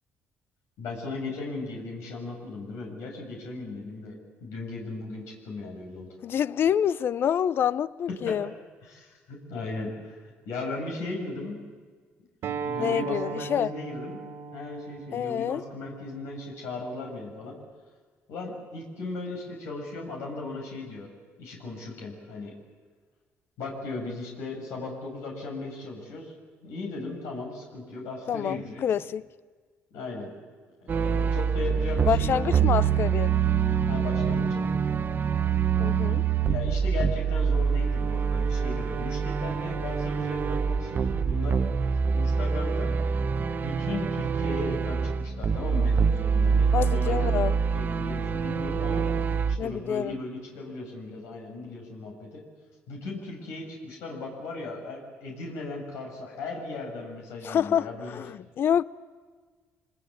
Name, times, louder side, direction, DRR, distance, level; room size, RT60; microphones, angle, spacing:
voice 1, 0.8-6.2 8.2-8.4 8.8-11.6 12.4-17.6 18.3-21.1 21.4-22.5 23.6-28.8 29.9-30.3 30.8-32.8 33.9-34.8 36.5-41.6 42.1-43.0 43.5-49.1 49.5-52.4 52.9-58.2, left 3 dB, 85° left, 6.5 m, -37 dB
voice 2, 6.2-8.5 12.8-13.7 15.1-15.6 28.3-29.2 32.1-33.4 35.8-36.2 46.7-47.5 49.6-50.2 57.4-58.8, left 9 dB, 55° left, 0.7 m, -27 dB
Acoustic guitar, 12.4-17.6, right 6 dB, 65° right, 2.0 m, -38 dB
sound 1, 30.9-49.6, right 6 dB, 45° right, 1.0 m, -25 dB
25.5 x 20.5 x 8.4 m
cardioid pair, 90°, 5 cm